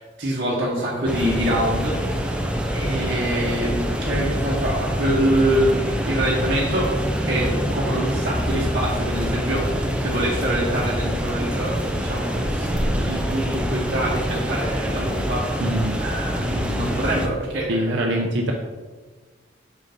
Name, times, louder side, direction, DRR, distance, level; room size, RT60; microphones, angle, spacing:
voice 1, 0.0-2.0 2.7-6.9 7.2-15.6 16.0-18.1, right 1 dB, 50° right, -6 dB, 1.2 m, -25 dB
sound 1, 1.1-17.3, equal, 5° right, 0.6 m, -25 dB
voice 2, 15.6-16.0 17.7-18.5, right 1 dB, 75° right, 1 dB, 0.7 m, -23 dB
6.5 x 3.9 x 5.2 m, 1.4 s
head